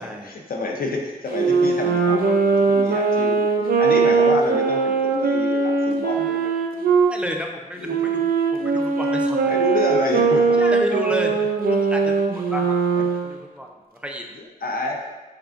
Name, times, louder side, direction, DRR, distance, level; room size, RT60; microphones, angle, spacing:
voice 1, 0.0-6.5 7.8-8.1 9.4-10.6 12.9-13.0 14.3-15.1, left 2 dB, 80° left, 1 dB, 0.5 m, -28 dB
Wind instrument woodwind instrument, 1.3-7.1 7.9-13.3, right 4 dB, 90° right, 0.4 m, -20 dB
voice 2, 7.0-9.6 10.6-11.4 11.7-13.7 14.0-14.3, equal, 10° right, 1 dB, 0.3 m, -31 dB
3.6 x 3.3 x 2.4 m, 1.2 s
wide cardioid pair, 125°, 15 cm